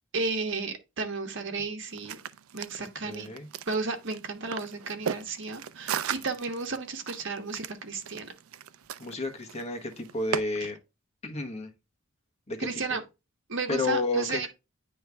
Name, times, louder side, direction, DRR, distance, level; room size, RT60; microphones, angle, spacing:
voice 1, 0.1-2.2 2.5-3.3 3.7-8.3 12.6-13.0 13.5-14.5, right 4 dB, 60° right, 1.2 m, -33 dB
sound 1, 1.9-10.4, right 8 dB, 90° right, 0.4 m, -37 dB
voice 2, 2.8-3.5 9.0-10.8 11.2-11.7 12.5-12.7 13.7-14.5, left 2 dB, 30° left, 1.3 m, -31 dB
9.5 x 3.2 x 3.4 m
head